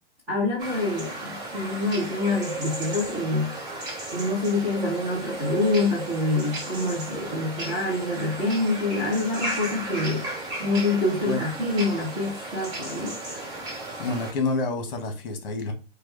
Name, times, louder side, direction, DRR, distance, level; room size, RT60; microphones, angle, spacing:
voice 1, 0.3-3.5 4.1-10.3 10.6-13.1, left 2 dB, 5° right, 0.6 m, -26 dB
sound 1, 0.6-14.3, right 2 dB, 20° right, 1.1 m, -34 dB
voice 2, 14.0-15.7, left 3 dB, 55° left, 1.4 m, -28 dB
4.6 x 2.3 x 3.2 m
hypercardioid pair, 175°, 34 cm